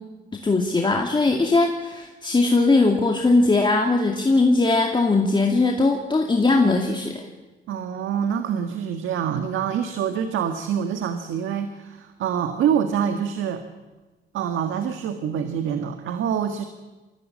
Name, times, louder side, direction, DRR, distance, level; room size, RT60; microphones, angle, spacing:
voice 1, 0.4-7.2, left 3 dB, 25° left, 2 dB, 2.2 m, -20 dB
voice 2, 7.7-13.6 14.3-16.6, right 8 dB, 80° right, 8 dB, 1.6 m, -26 dB
23.5 x 17.0 x 8.5 m, 1.2 s
cardioid pair, 90°, 20 cm